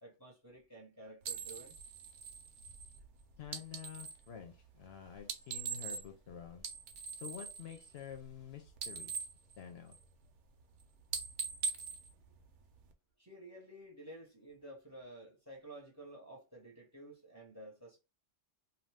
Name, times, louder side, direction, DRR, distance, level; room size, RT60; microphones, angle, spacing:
voice 1, 0.0-1.8 13.2-18.0, right 1 dB, 15° right, 0.8 m, -52 dB
sound 1, 1.2-4.2 5.2-6.3 6.5-8.4 8.7-10.2 10.6-10.8 11.1-12.9, right 6 dB, 75° right, 0.9 m, -42 dB
voice 2, 3.4-6.7 7.2-9.2 9.6-10.0, left 8 dB, 65° left, 0.8 m, -49 dB
2.6 x 2.3 x 3.2 m
omnidirectional pair, 1.2 m